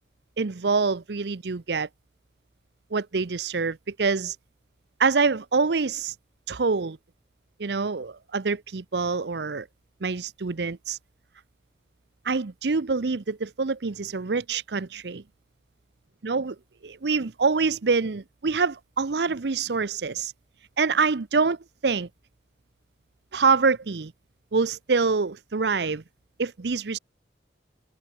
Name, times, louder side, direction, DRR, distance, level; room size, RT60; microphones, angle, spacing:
voice 1, 0.4-1.9 2.9-4.4 5.0-6.1 6.5-7.0 7.6-9.7 10.0-11.0 12.2-15.2 16.2-16.5 16.8-20.3 20.8-21.6 21.8-22.1 23.3-24.1 24.5-26.0 26.4-27.0, right 4 dB, 75° right, 0.7 m, -25 dB
head